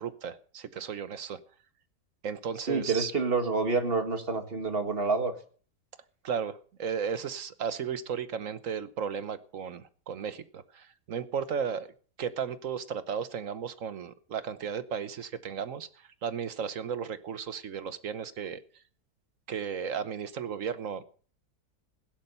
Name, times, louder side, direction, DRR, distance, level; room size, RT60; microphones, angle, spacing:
voice 1, 0.0-1.4 2.2-3.1 6.2-11.9 12.2-15.9 16.2-18.6 19.5-21.0, right 7 dB, 60° right, 13 dB, 1.2 m, -34 dB
voice 2, 2.7-5.3, right 4 dB, 35° right, 6 dB, 2.0 m, -28 dB
16.5 x 11.0 x 5.5 m, 0.43 s
omnidirectional pair, 1.7 m